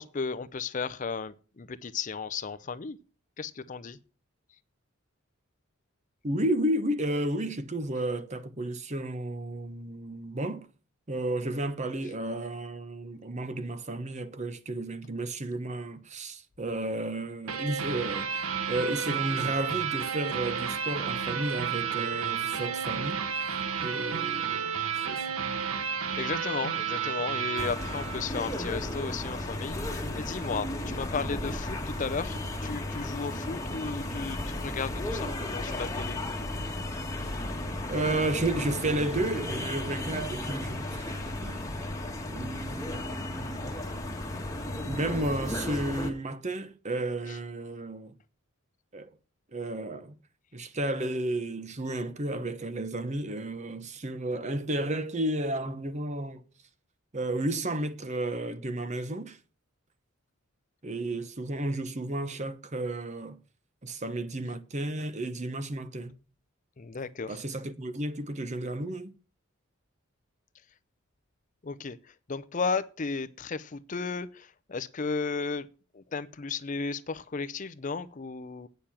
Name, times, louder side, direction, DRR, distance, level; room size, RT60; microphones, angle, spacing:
voice 1, 0.0-3.0 3.4-4.0 26.2-36.2 36.6-36.8 47.3-47.4 66.8-67.4 71.6-75.7 75.9-78.7, left 4 dB, 35° left, 0.5 m, -34 dB
voice 2, 6.2-10.7 11.1-18.3 18.7-23.2 23.8-24.7 25.1-25.3 37.9-41.0 41.4-41.7 42.3-43.8 44.8-48.2 48.9-49.1 49.5-50.2 50.5-56.4 57.1-59.4 60.8-63.4 63.8-66.1 67.3-69.1, right 1 dB, 35° right, 0.9 m, -32 dB
sound 1, 17.5-28.7, right 7 dB, 85° right, 1.1 m, -32 dB
sound 2, 27.6-46.1, left 1 dB, 15° left, 1.4 m, -34 dB
9.1 x 6.8 x 7.1 m
head